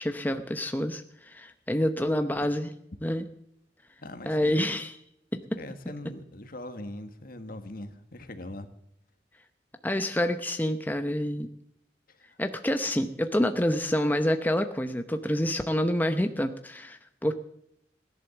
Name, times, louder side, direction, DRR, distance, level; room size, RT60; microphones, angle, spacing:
voice 1, 0.0-2.7 3.0-3.2 4.3-4.9 5.3-5.4 9.8-11.5 12.4-17.3, left 1 dB, 10° left, 7 dB, 0.8 m, -27 dB
voice 2, 4.0-4.7 5.6-8.7 12.1-12.4, left 1 dB, 55° left, 8 dB, 1.7 m, -41 dB
17.5 x 11.0 x 7.2 m, 0.76 s
head